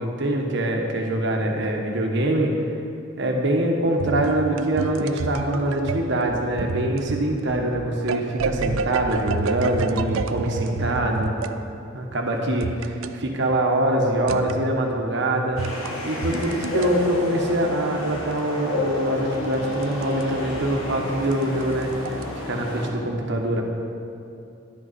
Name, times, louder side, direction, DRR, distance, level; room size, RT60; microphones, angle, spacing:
voice 1, 0.0-2.5 3.2-11.3 11.9-15.6 16.0-22.2 22.5-23.6, right 1 dB, 60° right, 1 dB, 1.2 m, -24 dB
sound 1, 4.0-11.6 12.6-13.2 14.3-14.7 15.5-16.9 18.3-20.3 20.6-20.7 21.2-22.3, right 5 dB, 85° right, 0.4 m, -30 dB
sound 2, 15.6-22.9, left 2 dB, 85° left, 1.6 m, -30 dB
10.5 x 8.1 x 4.2 m, 2.6 s
head